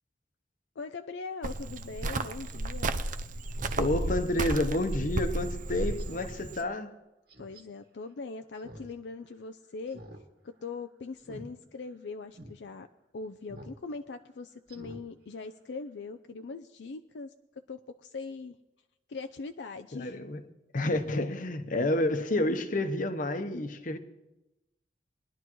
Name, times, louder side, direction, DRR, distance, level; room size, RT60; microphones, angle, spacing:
voice 1, 0.8-3.0 7.4-10.0 10.4-12.9 13.1-17.3 17.7-18.6 19.1-20.2 21.0-21.1, left 4 dB, 75° left, 8 dB, 0.5 m, -41 dB
Cricket, 1.4-6.6, right 2 dB, 50° right, 0.6 m, -33 dB
Speech synthesizer, 2.5-2.7 3.1-3.2 3.5-3.8 4.2-4.3 4.9-5.1 5.5-5.6 6.0-6.3 7.3-7.6 8.5-8.9 9.2-9.3 9.9-10.2 10.5-10.7 11.2-11.5 11.9-12.0 12.3-12.5 13.5-13.8 14.1-14.2 14.7-15.0 15.4-15.5, equal, 65° right, 1.7 m, -47 dB
voice 2, 3.8-6.9 19.9-20.5 20.7-24.0, left 1 dB, 50° left, 8 dB, 0.9 m, -29 dB
21.5 x 11.0 x 3.1 m, 0.95 s
head